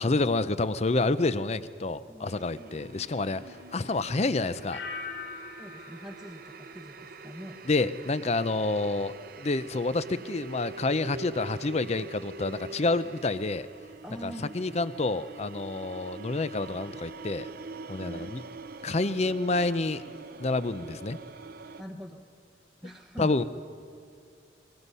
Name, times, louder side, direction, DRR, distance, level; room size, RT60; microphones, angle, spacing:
voice 1, 0.0-3.4 3.7-4.8 7.7-13.7 14.2-17.5 17.9-18.4 18.8-20.0 20.4-21.2 23.2-23.4, left 3 dB, 35° left, 14 dB, 0.6 m, -28 dB
voice 2, 2.1-2.7 5.6-7.6 14.0-14.6 18.0-18.9 21.8-22.3 22.8-23.4, equal, ahead, 0 dB, 0.9 m, -44 dB
sound 1, 2.2-21.8, right 3 dB, 50° right, 0.6 m, -45 dB
sound 2, 4.7-7.6 7.9-8.4, left 5 dB, 85° left, 4.4 m, -43 dB
23.5 x 20.5 x 5.5 m, 2.4 s
head